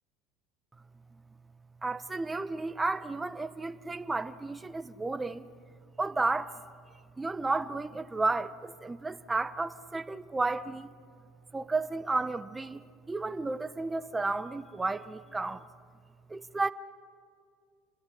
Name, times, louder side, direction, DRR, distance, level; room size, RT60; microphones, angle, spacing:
voice 1, 1.8-5.5 6.0-6.5 7.2-10.9 11.5-15.7 16.3-16.7, right 3 dB, 15° right, 0.8 m, -32 dB
27.5 x 20.0 x 6.4 m
hypercardioid pair, 80°, 0 cm